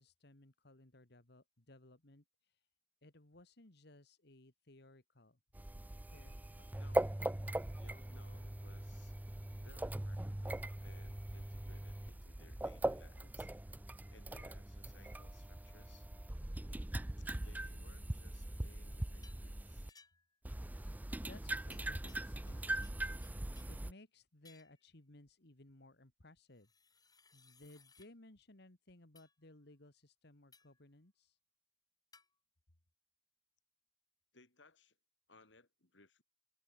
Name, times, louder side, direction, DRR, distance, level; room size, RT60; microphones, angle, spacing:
voice 1, 0.0-2.7 3.0-5.4 6.1-6.7 21.2-31.4, left 2 dB, 65° left, 2.3 m, -61 dB
sound 1, 5.5-19.9 20.5-23.9, right 1 dB, 10° right, 0.4 m, -41 dB
voice 2, 6.7-7.1 7.7-9.1 9.6-13.5 14.1-16.1 17.2-19.9 34.3-35.0 35.3-36.2, left 3 dB, 85° left, 4.3 m, -65 dB
sound 2, 19.2-19.5 19.9-20.4 21.7-22.6 22.8-23.8 24.4-24.8 26.5-28.1 29.2-29.3 30.5-30.8 32.1-32.3, left 5 dB, 20° left, 7.8 m, -65 dB
open air
head